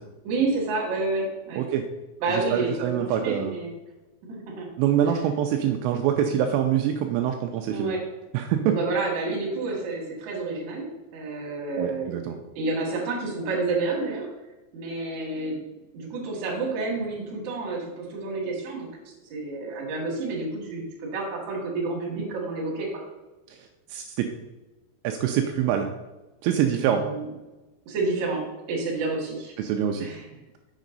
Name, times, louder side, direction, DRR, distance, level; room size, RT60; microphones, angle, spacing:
voice 1, 0.2-1.6 2.2-2.7 3.0-3.7 4.3-4.7 7.7-8.0 8.6-10.9 11.1-12.3 12.5-14.3 14.7-15.6 15.9-18.9 19.3-22.9 26.9-27.3 27.9-28.4 28.7-29.5 30.0-30.2, right 3 dB, 50° right, -2 dB, 2.6 m, -29 dB
voice 2, 2.3-3.6 4.8-7.9 8.3-8.7 11.8-12.4 23.9-24.3 25.0-25.9 26.4-27.1 29.6-30.1, right 9 dB, 85° right, 4 dB, 3.0 m, -25 dB
7.4 x 7.2 x 3.9 m, 1.1 s
omnidirectional pair, 5.9 m